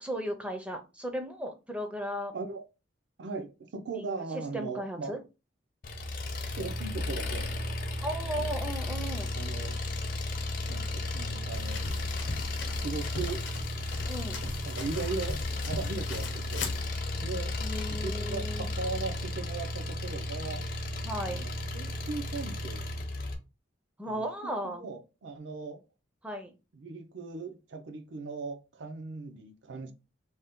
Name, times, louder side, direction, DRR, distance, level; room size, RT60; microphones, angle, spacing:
voice 1, 0.0-2.3 3.9-4.0 4.3-5.2 8.0-9.3 14.0-14.4 17.6-18.7 21.0-21.4 24.0-24.9 26.2-26.5, equal, 5° right, 0.4 m, -36 dB
voice 2, 2.3-2.7 3.2-5.2 6.6-7.5 8.6-8.7 9.1-9.8 10.7-11.9 12.8-13.4 14.7-16.7 17.1-17.5 17.9-20.6 21.3-22.8 24.0-25.8 26.7-29.9, right 4 dB, 65° right, 0.5 m, -38 dB
Engine, 5.8-23.4, left 2 dB, 50° left, 0.5 m, -34 dB
sound 1, 11.5-16.8, left 3 dB, 75° left, 0.8 m, -39 dB
2.7 x 2.1 x 3.5 m
head